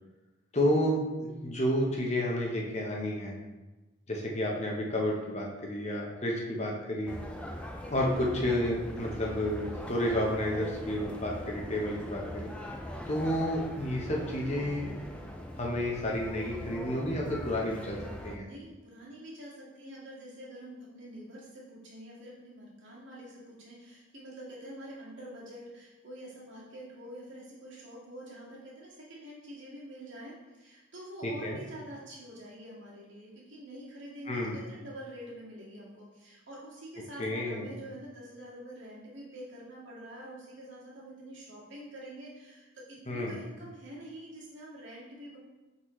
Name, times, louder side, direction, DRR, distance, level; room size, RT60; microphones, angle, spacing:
voice 1, 0.5-3.3 4.1-7.1 7.9-12.5 13.1-14.9 15.6-18.0 18.2-18.5 31.2-31.6 34.3-34.6 37.2-37.7 43.1-43.4, left 1 dB, 35° left, -1 dB, 0.9 m, -31 dB
sound 1, 7.1-18.4, left 1 dB, 5° left, 0.4 m, -41 dB
voice 2, 18.4-45.4, right 1 dB, 70° right, -6 dB, 2.0 m, -46 dB
7.8 x 4.1 x 3.1 m, 1.1 s
head